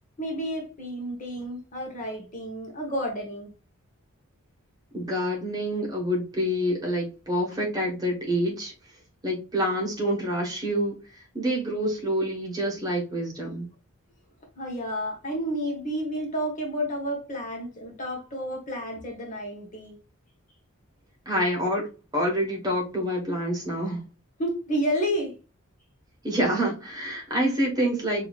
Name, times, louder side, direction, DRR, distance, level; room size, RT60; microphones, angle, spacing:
voice 1, 0.2-3.5 14.6-20.0 24.4-25.3, equal, 35° left, 1.1 m, -31 dB
voice 2, 4.9-8.7 9.2-13.7 21.2-21.9 22.1-24.0 26.2-28.3, equal, 15° right, 1.5 m, -27 dB
5.5 x 2.8 x 2.4 m
head